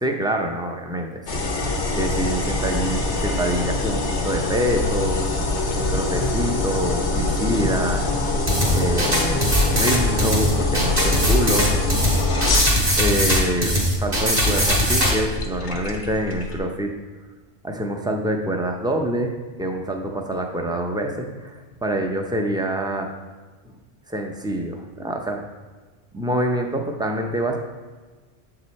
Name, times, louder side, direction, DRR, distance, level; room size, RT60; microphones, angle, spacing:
voice 1, 0.0-1.4 1.7-5.2 5.7-8.0 8.7-11.8 13.0-16.9 17.6-23.1 23.6-23.8 24.1-25.5 26.1-27.6, right 1 dB, 5° right, 2 dB, 0.4 m, -26 dB
sound 1, 1.3-16.6, left 2 dB, 80° left, 1.2 m, -24 dB
sound 2, 8.5-15.1, equal, 60° right, 1.9 m, -21 dB
7.6 x 4.9 x 4.2 m, 1.3 s
omnidirectional pair, 1.1 m